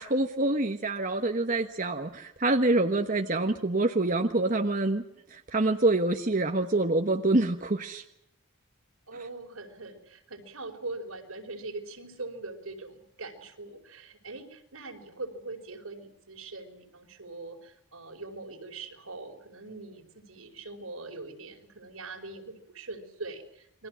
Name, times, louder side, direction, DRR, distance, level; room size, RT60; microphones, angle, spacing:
voice 1, 0.0-5.0 5.3-8.0, right 2 dB, 40° right, 4 dB, 1.3 m, -26 dB
voice 2, 9.1-23.9, right 3 dB, 80° right, 3 dB, 5.0 m, -42 dB
29.5 x 22.5 x 6.3 m, 0.77 s
head